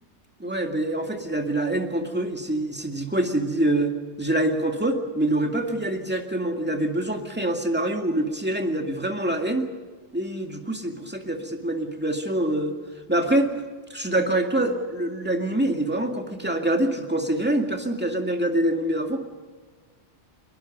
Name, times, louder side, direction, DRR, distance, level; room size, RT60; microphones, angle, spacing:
voice 1, 0.4-9.7 10.1-12.8 13.1-13.5 13.9-19.2, right 1 dB, 10° right, 3 dB, 2.1 m, -25 dB
23.5 x 22.0 x 5.4 m, 1.5 s
omnidirectional pair, 1.2 m